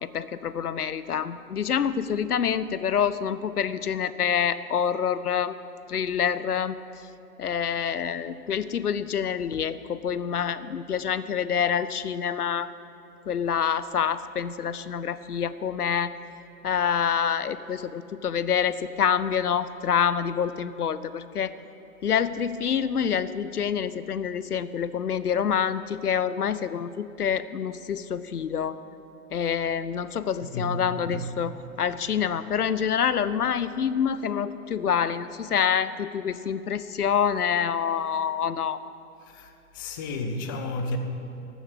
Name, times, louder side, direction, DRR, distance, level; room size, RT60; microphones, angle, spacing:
voice 1, 0.0-5.5 5.9-6.8 7.4-12.7 13.3-16.1 16.6-21.5 22.0-28.8 29.3-31.5 31.8-38.8, left 8 dB, 85° left, 0.6 m, -27 dB
voice 2, 30.4-30.8 31.0-31.4 39.3-41.0, left 2 dB, 15° left, 0.4 m, -32 dB
13.5 x 7.1 x 7.3 m
figure-of-eight pair, 110°, 45 cm